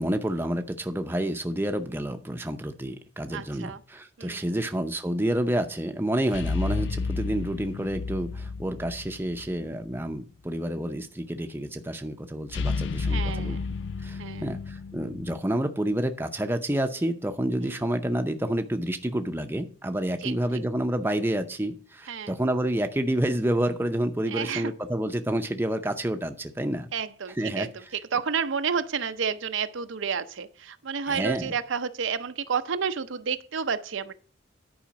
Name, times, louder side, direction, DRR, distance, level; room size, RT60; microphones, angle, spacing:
voice 1, 0.0-13.6 14.0-26.9 27.3-27.7 31.1-31.5, right 1 dB, 10° right, 0.6 m, -29 dB
voice 2, 3.3-3.8 4.2-4.6 13.1-13.6 14.2-14.5 17.6-17.8 20.2-20.6 22.1-22.3 24.3-24.7 26.9-27.7 28.1-34.1, right 6 dB, 80° right, 0.6 m, -30 dB
sound 1, 6.3-9.6 9.9-10.0 12.5-15.4, left 4 dB, 65° left, 0.4 m, -31 dB
10.0 x 4.9 x 6.1 m
head